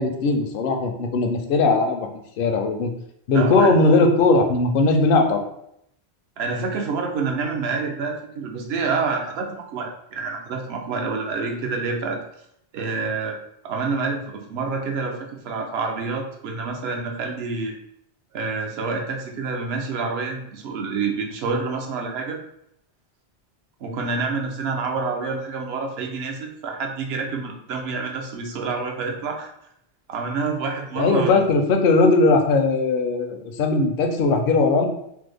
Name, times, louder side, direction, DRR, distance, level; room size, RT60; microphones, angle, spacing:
voice 1, 0.0-2.9 3.3-5.4 31.0-34.9, left 3 dB, 60° left, 4 dB, 0.6 m, -19 dB
voice 2, 3.3-3.7 6.4-12.2 12.7-13.4 13.6-17.7 18.3-22.4 23.8-29.5 30.1-31.4, right 4 dB, 70° right, 2 dB, 0.8 m, -27 dB
3.3 x 2.0 x 3.3 m, 0.74 s
omnidirectional pair, 1.2 m